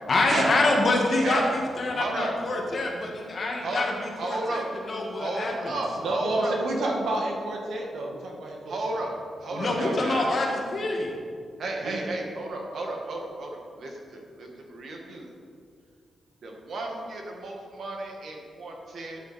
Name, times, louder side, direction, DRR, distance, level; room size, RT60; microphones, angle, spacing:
voice 1, 0.1-5.8 9.6-11.1, left 2 dB, 35° left, -1 dB, 1.8 m, -26 dB
voice 2, 1.9-2.3 3.6-3.9 4.2-4.7 5.2-6.6 8.7-10.3 11.6-15.3 16.4-19.2, right 2 dB, 55° right, 1 dB, 1.6 m, -33 dB
voice 3, 6.0-8.9 9.5-9.7 11.8-12.0, right 1 dB, 80° right, -1 dB, 1.8 m, -29 dB
13.0 x 8.2 x 4.2 m, 2.2 s
wide cardioid pair, 175°, 0 cm